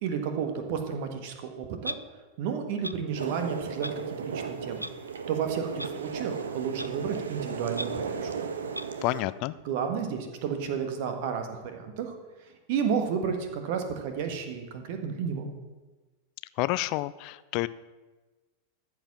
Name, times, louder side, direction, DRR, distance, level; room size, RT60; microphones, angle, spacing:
voice 1, 0.0-1.9 2.4-4.9 5.3-8.3 9.6-12.1 12.7-15.5, right 7 dB, 50° right, 6 dB, 1.6 m, -32 dB
Clock, 1.8-2.0 2.8-2.9 3.8-3.9 4.8-4.9 5.8-5.9 6.8-6.9 7.8-7.9 8.7-8.9, equal, 90° right, 0.4 m, -35 dB
sound 1, 3.2-9.2, right 6 dB, 70° right, 0.9 m, -35 dB
voice 2, 9.0-9.5 16.6-17.7, left 18 dB, 45° left, 17 dB, 0.4 m, -29 dB
13.5 x 5.0 x 7.4 m, 1.2 s
figure-of-eight pair, 90°, 0 cm